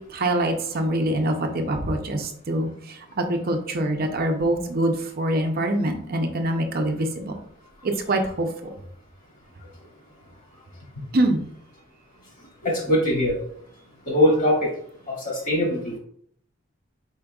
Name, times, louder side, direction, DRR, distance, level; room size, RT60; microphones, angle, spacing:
voice 1, 0.0-2.7 3.2-7.4 7.8-8.5 11.1-11.4, right 1 dB, 50° right, 4 dB, 0.6 m, -24 dB
voice 2, 12.6-13.3 14.1-14.7 15.1-16.0, left 1 dB, 40° left, -3 dB, 2.0 m, -21 dB
5.0 x 4.4 x 2.3 m, 0.63 s
head